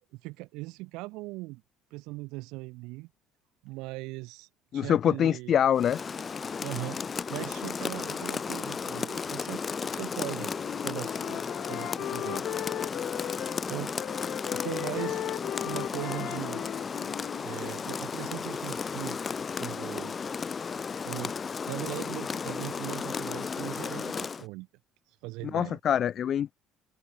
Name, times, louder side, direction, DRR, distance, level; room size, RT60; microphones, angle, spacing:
voice 1, 0.1-1.6 1.9-3.1 3.6-5.5 6.6-10.5 10.8-11.4 11.7-12.4 13.7-13.9 14.5-15.2 15.6-16.6 17.4-19.2 19.6-20.1 21.0-21.3 21.6-24.7 25.1-25.8, right 23 dB, 85° right, 4.8 m, -39 dB
voice 2, 4.7-6.0 25.5-26.5, left 9 dB, 45° left, 2.6 m, -25 dB
Rain, 5.7-24.5, left 5 dB, 30° left, 4.5 m, -34 dB
Wind instrument woodwind instrument, 10.1-13.6 14.0-18.0, left 13 dB, 60° left, 3.6 m, -37 dB
cardioid pair, 125°, 0 cm